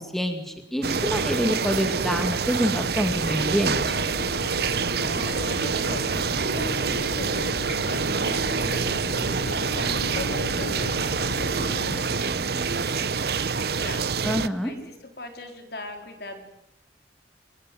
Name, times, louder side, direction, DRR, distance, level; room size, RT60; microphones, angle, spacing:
voice 1, 0.0-3.9 14.2-14.7, equal, ahead, 5 dB, 2.2 m, -26 dB
sound 1, 0.8-14.5, right 5 dB, 60° right, 0.9 m, -26 dB
sound 2, 3.0-12.0, left 2 dB, 85° left, 0.9 m, -36 dB
voice 2, 5.1-6.1 6.5-16.4, left 2 dB, 60° left, 6 dB, 4.2 m, -39 dB
23.5 x 20.0 x 9.3 m, 0.83 s
head